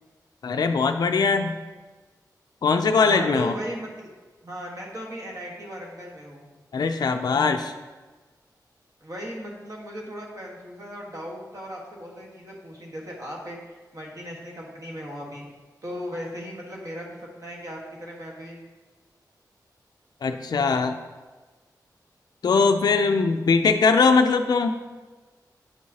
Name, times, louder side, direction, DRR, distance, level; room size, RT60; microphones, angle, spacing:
voice 1, 0.4-1.6 2.6-3.5 6.7-7.7 20.2-20.9 22.4-24.7, left 4 dB, 70° left, 6 dB, 0.4 m, -21 dB
voice 2, 3.0-4.1 4.4-6.5 9.0-13.6 13.9-15.5 15.8-18.6 20.5-20.8, equal, 50° right, -2 dB, 1.4 m, -37 dB
9.0 x 4.6 x 2.8 m, 1.3 s
wide cardioid pair, 95°, 7 cm